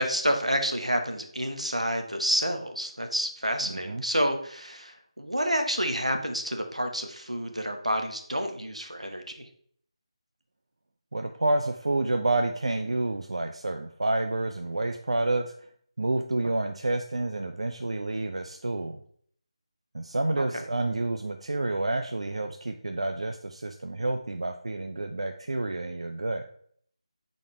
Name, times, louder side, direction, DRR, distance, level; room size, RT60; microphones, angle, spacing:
voice 1, 0.0-9.5 20.4-20.6, equal, 90° right, 5 dB, 1.1 m, -29 dB
voice 2, 3.7-4.0 11.1-15.5 16.0-19.0 19.9-26.4, right 2 dB, 65° right, 5 dB, 0.5 m, -29 dB
8.1 x 4.2 x 3.2 m, 0.62 s
figure-of-eight pair, 160°, 3 cm